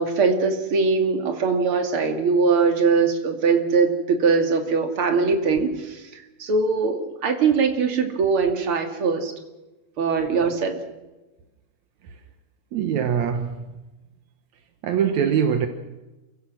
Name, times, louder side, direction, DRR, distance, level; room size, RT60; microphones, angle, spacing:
voice 1, 0.0-9.3 10.0-10.8, right 4 dB, 40° right, 2.5 m, -21 dB
voice 2, 12.7-13.7 14.8-15.7, right 8 dB, 70° right, 1.7 m, -23 dB
29.0 x 16.5 x 6.2 m
omnidirectional pair, 4.9 m